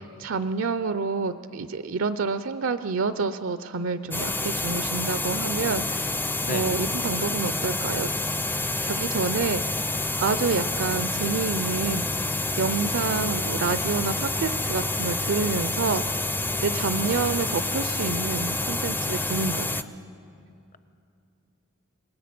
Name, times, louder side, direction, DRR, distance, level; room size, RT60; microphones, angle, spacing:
voice 1, 0.0-6.1 6.5-8.1 8.8-9.6 10.2-12.3 12.6-16.0 16.6-19.9, right 4 dB, 75° right, 12 dB, 0.5 m, -28 dB
sound 1, 4.1-19.8, left 2 dB, 10° left, 0.4 m, -28 dB
voice 2, 6.4-6.8 16.7-17.4, left 3 dB, 40° left, 12 dB, 0.8 m, -35 dB
26.0 x 21.0 x 6.0 m, 2.6 s
head